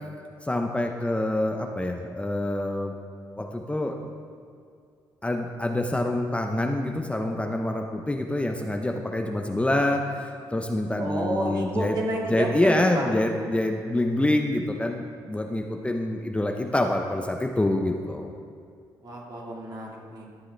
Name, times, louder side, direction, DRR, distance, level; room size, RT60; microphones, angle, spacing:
voice 1, 0.4-3.0 3.4-4.1 5.2-12.0 12.3-18.3, left 1 dB, 15° left, 3 dB, 0.7 m, -26 dB
voice 2, 11.0-13.1 19.0-20.3, right 1 dB, 45° right, -3 dB, 2.3 m, -30 dB
13.5 x 7.3 x 3.4 m, 2.4 s
supercardioid pair, 65°, 9 cm